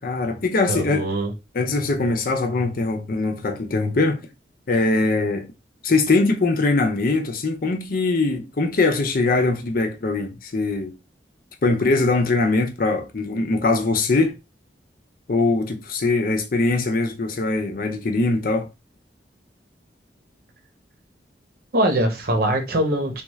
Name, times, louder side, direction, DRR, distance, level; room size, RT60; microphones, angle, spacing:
voice 1, 0.0-1.0 1.5-4.2 4.7-5.5 5.8-10.9 11.6-14.3 15.3-18.7, left 3 dB, 50° left, 0.6 m, -22 dB
voice 2, 0.7-1.3 21.7-23.2, right 1 dB, 55° right, 0.9 m, -22 dB
3.5 x 2.4 x 3.1 m
head